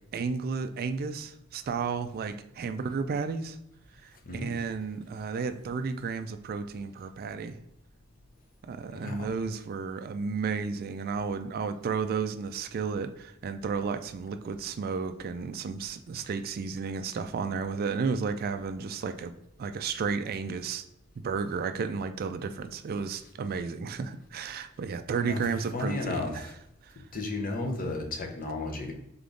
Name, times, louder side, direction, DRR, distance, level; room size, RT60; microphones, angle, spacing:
voice 1, 0.1-3.6 4.0-7.6 8.6-19.3 19.6-20.8 21.2-26.5 26.8-27.0, right 5 dB, 45° right, 9 dB, 0.3 m, -33 dB
voice 2, 8.9-9.3 25.2-25.5 25.7-26.5 27.1-28.9, left 2 dB, 40° left, 3 dB, 0.8 m, -33 dB
3.8 x 3.6 x 3.7 m, 0.82 s
head